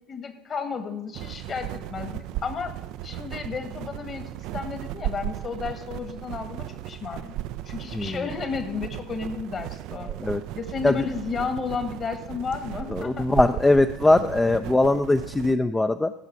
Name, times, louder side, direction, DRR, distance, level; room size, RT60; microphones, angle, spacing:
voice 1, 0.1-2.7 3.0-7.3 7.6-10.1 10.5-13.3, left 5 dB, 35° left, 8 dB, 1.5 m, -33 dB
sound 1, 1.1-15.5, right 14 dB, 55° right, 0.3 m, -36 dB
voice 2, 12.9-16.1, left 2 dB, 15° left, 9 dB, 0.4 m, -21 dB
15.0 x 5.7 x 5.8 m, 0.84 s
figure-of-eight pair, 60°, 0 cm